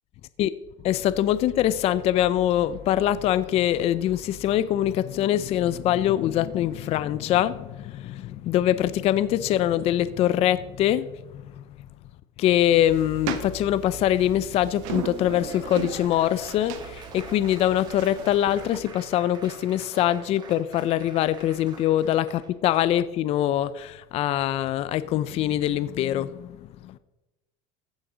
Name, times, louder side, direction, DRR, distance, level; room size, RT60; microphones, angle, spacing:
voice 1, 0.8-11.6 12.4-27.0, left 12 dB, 35° left, 15 dB, 0.5 m, -24 dB
sound 1, 12.8-18.9, right 8 dB, 70° right, 1.5 m, -38 dB
Laughter / Applause, 14.7-22.5, right 3 dB, 25° right, 1.9 m, -44 dB
15.0 x 6.5 x 6.1 m, 1.0 s
cardioid pair, 155°, 17 cm